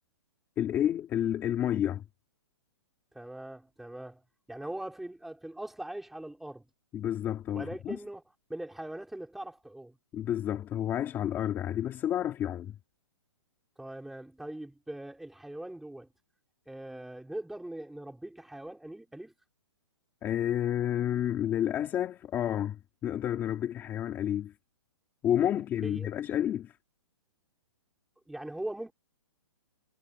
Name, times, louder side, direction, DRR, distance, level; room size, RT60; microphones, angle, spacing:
voice 1, 0.6-2.0 6.9-8.0 10.1-12.8 20.2-24.5 25.2-26.8, left 10 dB, 15° left, 2.8 m, -30 dB
voice 2, 3.1-4.2 4.5-6.6 7.6-8.2 8.5-10.0 13.8-16.1 16.7-19.3 25.8-26.1 28.3-28.9, right 1 dB, ahead, 5.4 m, -41 dB
hypercardioid pair, 170°, 16 cm